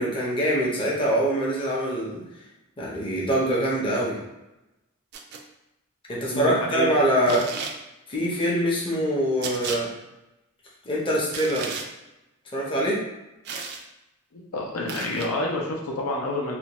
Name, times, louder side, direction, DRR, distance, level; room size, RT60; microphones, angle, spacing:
voice 1, 0.0-2.2 2.8-4.2 6.1-7.4 8.1-9.9 10.9-11.7 12.5-13.0, right 1 dB, 25° left, -5 dB, 0.6 m, -24 dB
sound 1, 5.1-5.4 7.3-7.8 9.4-9.8 11.3-11.9 13.4-13.8 14.9-15.3, right 5 dB, 50° right, 0.3 m, -34 dB
voice 2, 6.3-6.9 7.3-7.4 14.3-16.6, left 1 dB, 80° left, -1 dB, 0.6 m, -28 dB
2.5 x 2.1 x 2.9 m, 0.95 s
head